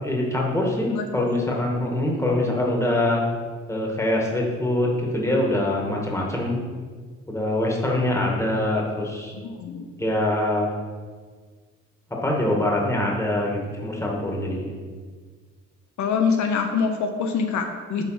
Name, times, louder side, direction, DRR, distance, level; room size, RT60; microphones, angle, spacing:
voice 1, 0.0-3.3 3.7-6.6 7.3-9.3 10.0-10.7 12.2-14.7, left 1 dB, 10° left, -2 dB, 2.0 m, -24 dB
voice 2, 0.9-1.3 9.4-10.0 16.0-18.0, left 5 dB, 70° left, 5 dB, 0.8 m, -25 dB
8.8 x 3.9 x 5.9 m, 1.5 s
cardioid pair, 90°, 30 cm